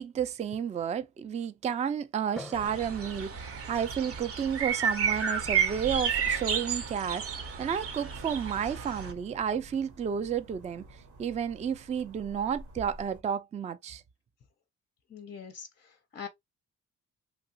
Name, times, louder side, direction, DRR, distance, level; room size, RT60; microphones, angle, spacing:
voice 1, 0.0-14.0, right 8 dB, 25° right, 0.3 m, -32 dB
Drum, 2.4-4.6, left 2 dB, ahead, 0.7 m, -49 dB
sound 1, 2.5-9.1, right 7 dB, 50° right, 0.7 m, -32 dB
sound 2, 4.4-13.2, right 1 dB, 70° right, 1.0 m, -51 dB
voice 2, 15.1-16.3, left 7 dB, 35° left, 0.5 m, -43 dB
3.0 x 2.4 x 2.7 m
cardioid pair, 90°, 30 cm